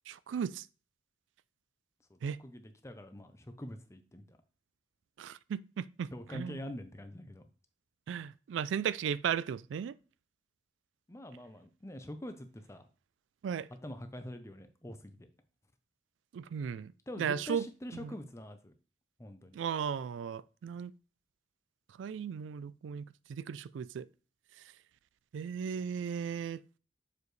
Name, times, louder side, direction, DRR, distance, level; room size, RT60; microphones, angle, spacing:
voice 1, 0.1-0.7 2.2-2.4 5.2-6.6 8.1-9.9 13.4-13.7 16.3-16.9 17.2-17.7 19.5-20.9 22.0-24.1 25.3-26.6, right 7 dB, 90° right, 0.3 m, -36 dB
voice 2, 2.1-4.4 6.1-7.5 11.1-12.8 13.8-15.3 17.1-18.7 19.2-19.6, left 1 dB, 15° left, 0.6 m, -45 dB
6.8 x 4.9 x 3.1 m
head